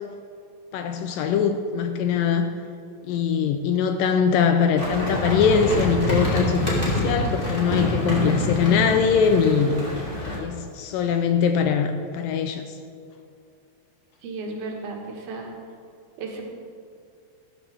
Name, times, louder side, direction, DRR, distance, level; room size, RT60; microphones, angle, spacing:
voice 1, 0.7-2.5 3.1-9.8 10.3-12.6, left 6 dB, 80° left, 7 dB, 2.1 m, -22 dB
sound 1, 4.8-10.4, left 1 dB, 20° left, 1.4 m, -26 dB
voice 2, 14.2-15.5 16.2-16.6, right 3 dB, 85° right, 0 dB, 3.5 m, -34 dB
14.0 x 12.5 x 3.4 m, 2.4 s
omnidirectional pair, 4.3 m